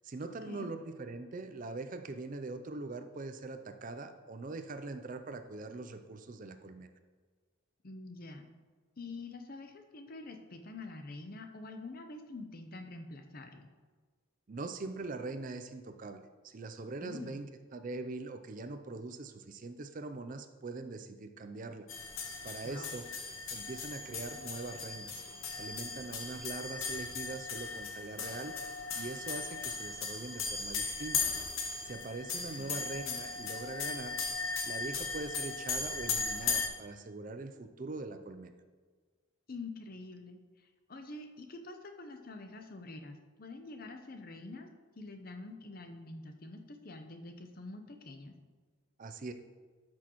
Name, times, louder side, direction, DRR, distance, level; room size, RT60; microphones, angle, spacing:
voice 1, 0.0-6.9 14.5-21.9 22.4-23.1 23.5-25.2 25.6-28.5 29.0-31.3 31.9-34.2 34.6-38.5 49.0-49.3, right 3 dB, 40° right, 8 dB, 0.4 m, -42 dB
voice 2, 7.8-8.5 9.0-13.7 17.0-17.4 22.6-22.9 32.6-32.8 39.5-40.4 40.9-44.7 45.0-48.3, left 3 dB, 45° left, 6 dB, 0.7 m, -46 dB
sound 1, 21.9-36.7, left 4 dB, 70° left, 0.9 m, -37 dB
12.5 x 6.1 x 3.0 m, 1.5 s
head